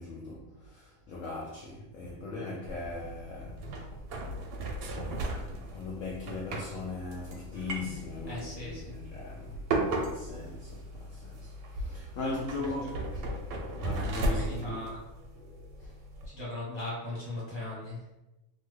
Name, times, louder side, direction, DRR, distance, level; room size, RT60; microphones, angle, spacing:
voice 1, 0.0-4.0 5.0-13.1 13.8-14.9 15.3-16.0, left 2 dB, 75° left, 0.7 m, -39 dB
sound 1, 2.6-16.3, right 1 dB, 85° right, 1.2 m, -36 dB
voice 2, 8.3-9.0 12.1-12.4 12.8-12.9 13.3-13.4 14.2-15.0 16.2-18.0, left 2 dB, 25° right, 0.6 m, -39 dB
2.9 x 2.3 x 3.0 m
omnidirectional pair, 1.9 m